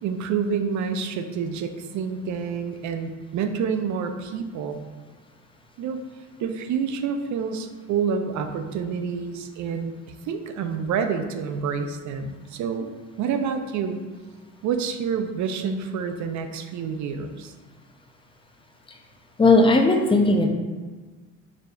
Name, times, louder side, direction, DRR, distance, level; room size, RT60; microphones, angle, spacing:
voice 1, 0.0-4.8 5.8-6.0 6.4-14.0 14.6-17.5, right 6 dB, 70° right, 7 dB, 0.4 m, -28 dB
voice 2, 19.4-20.5, left 2 dB, 20° left, 4 dB, 0.4 m, -17 dB
4.9 x 2.7 x 2.3 m, 1.4 s
cardioid pair, 90°, 30 cm